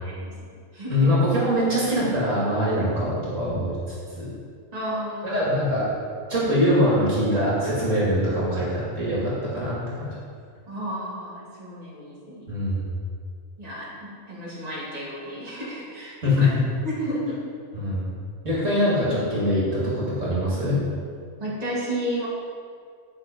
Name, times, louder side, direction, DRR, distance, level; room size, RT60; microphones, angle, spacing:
voice 1, 0.0-1.1 4.7-5.4 10.7-12.4 13.6-16.5 16.8-17.4 21.4-22.3, equal, 30° right, -8 dB, 2.6 m, -32 dB
voice 2, 0.9-3.8 4.2-4.3 5.2-5.9 6.3-10.1 12.5-12.8 16.2-16.6 17.8-18.1 18.4-20.8, left 1 dB, 65° right, -7 dB, 2.7 m, -23 dB
10.5 x 6.0 x 5.2 m, 2.1 s
omnidirectional pair, 1.4 m